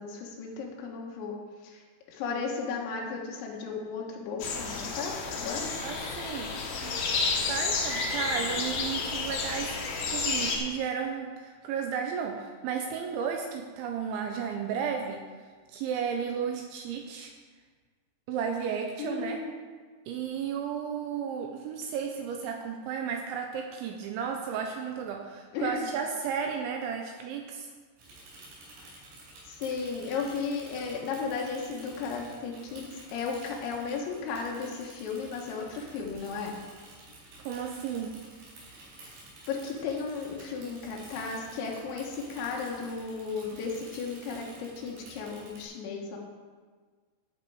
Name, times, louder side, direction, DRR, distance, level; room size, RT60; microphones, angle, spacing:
voice 1, 0.0-1.4 1.6-1.8 2.1-5.7 19.0-19.5 25.5-25.9 29.5-36.6 39.5-46.2, left 5 dB, 80° left, -1 dB, 4.1 m, -35 dB
sound 1, 4.4-10.6, left 4 dB, 65° left, 2.6 m, -31 dB
voice 2, 5.8-7.0 7.5-9.7 10.1-15.2 15.7-17.3 18.3-19.4 20.1-27.7 37.4-38.1, right 7 dB, 80° right, 3 dB, 2.8 m, -33 dB
Bicycle / Mechanisms, 28.0-45.6, right 2 dB, 50° right, 5.9 m, -50 dB
13.5 x 7.4 x 4.8 m, 1.5 s
omnidirectional pair, 5.9 m